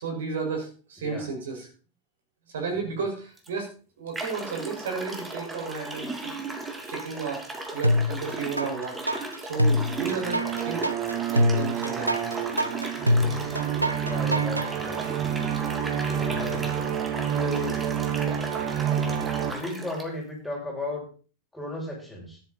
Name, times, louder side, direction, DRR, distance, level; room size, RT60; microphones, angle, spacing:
voice 1, 0.0-1.7 2.5-3.7 4.0-6.3 6.9-7.4 7.7-9.0 9.5-10.9 11.1-12.1, right 4 dB, 60° right, 2 dB, 5.4 m, -33 dB
voice 2, 1.0-1.3 2.7-3.0 14.0-15.3 16.1-16.7 17.2-17.8 19.4-21.1 21.5-22.4, left 1 dB, 5° left, -3 dB, 7.2 m, -35 dB
sound 1, 3.4-3.5 4.1-20.1, right 2 dB, 10° right, 2.8 m, -36 dB
sound 2, 7.8-8.7 9.1-14.7, left 1 dB, 85° right, 0.8 m, -24 dB
sound 3, 9.6-19.5, right 9 dB, 40° right, 1.7 m, -29 dB
13.0 x 11.0 x 4.2 m, 0.38 s
figure-of-eight pair, 90°, 0 cm